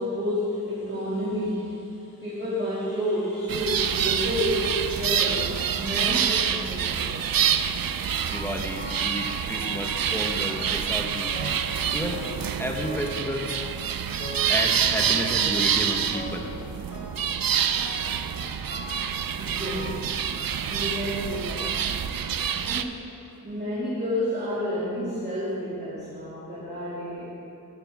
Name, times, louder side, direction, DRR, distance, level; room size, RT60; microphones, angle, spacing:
voice 1, 0.0-7.9 19.4-20.1 20.7-21.8 22.6-23.1 23.4-27.3, equal, 25° right, -10 dB, 2.5 m, -30 dB
sound 1, 3.5-22.8, right 8 dB, 70° right, 0.5 m, -27 dB
sound 2, 8.1-8.5 8.8-10.1 10.5-11.0 11.3-11.8 12.1-13.8 14.2-14.7 15.1-15.8 16.1-16.6 16.9-17.3 17.8-18.2 18.7-19.2 19.5-20.6 21.3-21.4 22.2-22.3 22.7-22.8, left 1 dB, 30° left, 1.9 m, -41 dB
voice 2, 8.2-11.3 11.9-12.2 12.6-13.6 14.5-16.5, equal, 5° left, 0 dB, 1.3 m, -31 dB
13.5 x 8.9 x 3.6 m, 2.9 s
wide cardioid pair, 55°, 36 cm